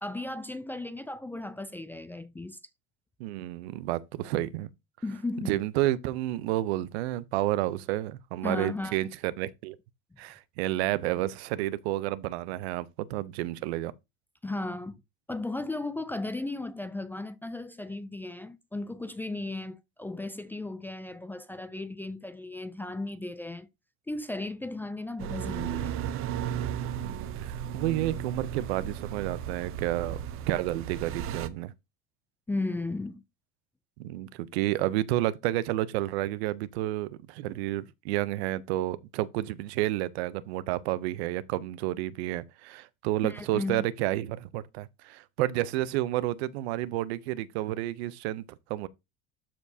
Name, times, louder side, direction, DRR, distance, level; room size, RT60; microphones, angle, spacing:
voice 1, 0.0-2.6 5.0-5.6 8.4-9.0 14.4-15.0 15.3-23.7 24.1-26.0 32.5-33.2 43.2-43.8, left 2 dB, 5° left, 0.3 m, -35 dB
voice 2, 3.2-4.7 5.5-9.8 10.2-13.9 27.0-30.2 30.5-31.7 34.0-48.4 48.7-48.9, right 15 dB, 85° right, 0.7 m, -30 dB
sound 1, 25.2-31.5, right 9 dB, 45° right, 0.7 m, -35 dB
12.0 x 4.4 x 2.8 m
supercardioid pair, 130°, 31 cm